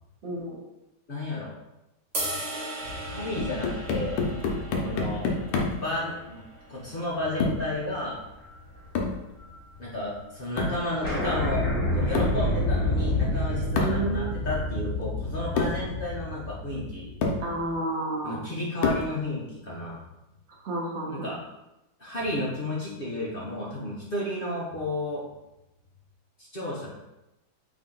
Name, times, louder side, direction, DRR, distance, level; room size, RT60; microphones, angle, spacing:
voice 1, 0.2-0.6 13.7-14.2 17.4-18.5 20.6-21.3, right 2 dB, 80° right, -2 dB, 0.6 m, -31 dB
voice 2, 1.1-1.5 2.2-2.3 3.1-4.2 4.7-5.3 5.8-6.4 6.7-8.2 9.8-11.7 11.9-17.1 18.2-20.0 21.1-21.4 22.0-25.3 26.4-27.0, left 1 dB, 60° left, -6 dB, 0.5 m, -32 dB
sound 1, 2.1-8.4, right 1 dB, 45° right, 1.0 m, -38 dB
sound 2, 2.8-5.4 5.9-6.0 7.5-7.8 8.1-9.5 9.8-9.9 10.1-10.2 10.5-10.6 11.0-17.7, left 1 dB, 45° left, 1.7 m, -29 dB
sound 3, 3.4-5.9 7.4-7.7 9.0-9.2 10.6-10.9 12.2-12.5 13.8-14.1 15.0-15.1 15.6-15.9 16.7-16.8 17.2-17.5 18.8-19.2, left 3 dB, 80° left, 1.4 m, -28 dB
3.6 x 2.7 x 3.7 m, 0.93 s
omnidirectional pair, 2.1 m